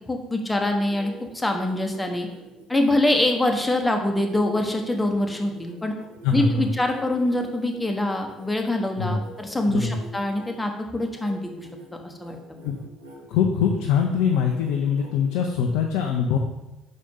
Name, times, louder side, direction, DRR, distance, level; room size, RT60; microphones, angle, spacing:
voice 1, 0.1-2.3 2.7-5.9 6.3-11.7 12.0-12.4, left 1 dB, 15° left, 3 dB, 1.3 m, -24 dB
sound 1, 0.6-8.4 8.9-10.6 11.0-11.3 11.6-11.9 12.2-13.2 13.6-15.4, right 2 dB, 75° right, 1.2 m, -46 dB
voice 2, 6.2-6.7 9.0-9.2 9.7-10.0 12.6-12.8 13.3-16.4, left 6 dB, 65° left, 2 dB, 0.6 m, -23 dB
5.3 x 4.9 x 5.5 m, 1.0 s
hypercardioid pair, 55°, 0 cm